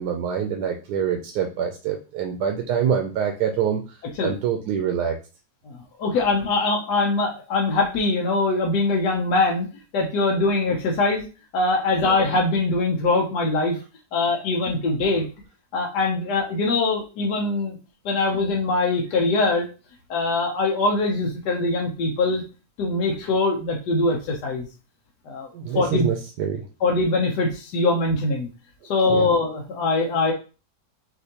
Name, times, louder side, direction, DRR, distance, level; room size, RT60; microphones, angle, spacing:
voice 1, 0.0-5.2 25.5-26.6 29.1-29.3, right 8 dB, 80° right, 3 dB, 1.2 m, -25 dB
voice 2, 5.7-9.7 9.9-11.3 11.5-13.8 14.1-15.3 15.7-17.8 18.0-19.7 20.1-22.4 22.8-24.7 25.3-25.5 25.7-26.1 26.8-28.5 28.9-30.3, left 3 dB, 90° left, 0 dB, 1.4 m, -22 dB
6.1 x 2.7 x 2.8 m, 0.34 s
omnidirectional pair, 1.7 m